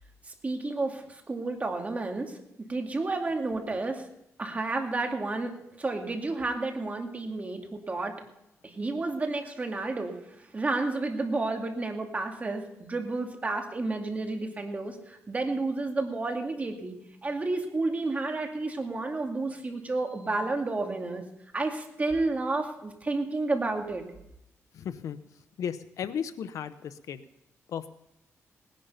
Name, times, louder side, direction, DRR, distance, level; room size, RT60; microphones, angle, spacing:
voice 1, 0.4-2.4 2.7-4.0 4.4-8.2 8.6-10.1 10.5-17.0 17.2-21.2 21.5-24.0, right 3 dB, 30° right, 3 dB, 2.4 m, -31 dB
voice 2, 24.7-25.2 25.6-27.2 27.7-27.9, left 8 dB, 80° left, 13 dB, 0.8 m, -35 dB
19.0 x 10.5 x 5.7 m, 0.82 s
cardioid pair, 110°, 5 cm